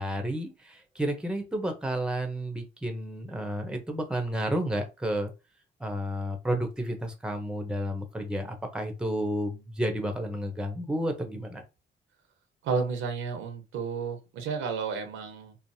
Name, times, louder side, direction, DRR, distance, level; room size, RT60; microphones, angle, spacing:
voice 1, 0.0-5.3 5.8-11.6, equal, 5° right, 5 dB, 0.7 m, -31 dB
voice 2, 12.6-15.6, right 5 dB, 85° right, 6 dB, 0.8 m, -32 dB
3.1 x 2.0 x 2.7 m, 0.27 s
cardioid pair, 90°, 20 cm